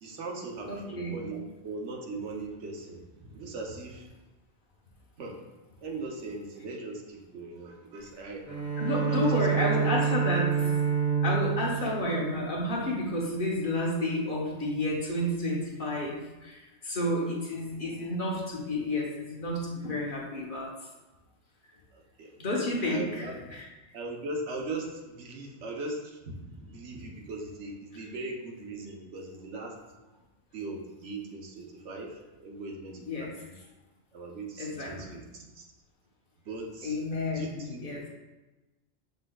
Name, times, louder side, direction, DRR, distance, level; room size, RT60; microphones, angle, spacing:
voice 1, 0.0-4.1 5.2-5.4 5.8-8.4 9.1-9.7 17.0-17.1 21.9-22.4 22.8-23.4 23.9-29.7 30.5-33.6 34.1-35.6 36.4-37.0 37.3-37.8, right 2 dB, 80° right, 0 dB, 1.1 m, -39 dB
voice 2, 0.7-1.2 8.8-10.6 11.2-20.7 22.4-23.6 33.1-33.3 34.6-34.9 36.8-38.0, left 1 dB, 50° left, -3 dB, 1.0 m, -30 dB
Bowed string instrument, 8.4-13.1, right 7 dB, 30° right, 1.2 m, -28 dB
6.4 x 3.6 x 2.3 m, 1.1 s
omnidirectional pair, 1.2 m